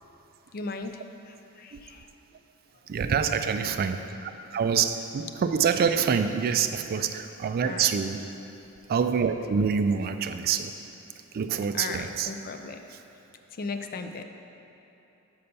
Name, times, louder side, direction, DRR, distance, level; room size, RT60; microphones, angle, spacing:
voice 1, 0.5-2.1 7.6-7.9 11.7-12.8 13.5-14.2, left 3 dB, 40° left, 7 dB, 0.4 m, -37 dB
voice 2, 2.9-8.2 8.9-10.7 11.3-12.3, right 6 dB, 40° right, 8 dB, 0.3 m, -26 dB
5.5 x 5.5 x 6.7 m, 3.0 s
head